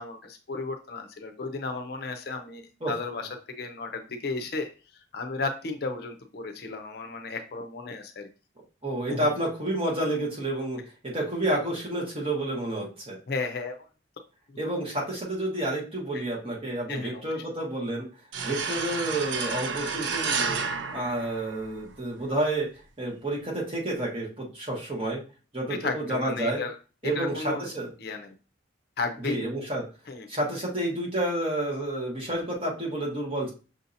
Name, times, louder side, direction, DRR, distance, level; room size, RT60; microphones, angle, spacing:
voice 1, 0.0-3.3 3.6-4.7 5.1-8.3 9.1-9.3 13.3-13.8 16.9-17.2 25.8-26.7 27.1-27.7 28.0-28.3 29.0-29.4 30.1-30.3, left 3 dB, 55° left, 5 dB, 0.5 m, -34 dB
voice 2, 8.8-13.2 14.6-18.1 18.4-20.6 20.9-22.7 23.0-25.2 25.5-26.6 27.0-27.9 29.2-29.8 30.3-33.5, right 1 dB, 30° right, -3 dB, 1.3 m, -30 dB
sound 1, 18.3-21.9, right 5 dB, 75° right, 0.5 m, -31 dB
6.2 x 2.7 x 2.6 m, 0.35 s
head